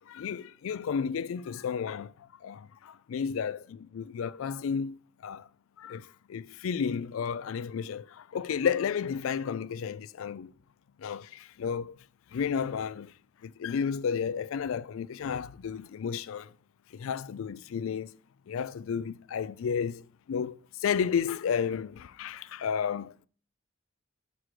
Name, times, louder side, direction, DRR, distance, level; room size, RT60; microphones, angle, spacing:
voice 1, 0.1-2.1 2.4-5.0 5.2-5.5 5.8-10.5 11.0-12.0 12.3-13.1 13.4-16.5 16.9-18.1 18.5-23.3, left 7 dB, 75° left, 0.3 m, -32 dB
6.2 x 4.8 x 5.7 m
head